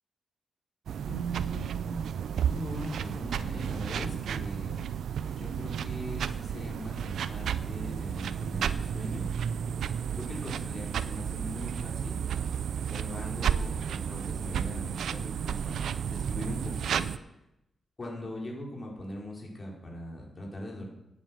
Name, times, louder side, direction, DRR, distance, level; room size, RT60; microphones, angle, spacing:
sound 1, 0.9-17.2, right 8 dB, 85° right, 0.4 m, -32 dB
voice 1, 1.0-2.0 2.4-4.8 5.3-9.3 10.1-12.2 12.8-17.0 18.0-20.9, equal, 40° left, -2 dB, 5.0 m, -40 dB
10.5 x 9.4 x 6.2 m, 0.86 s
cardioid pair, 70°, 0 cm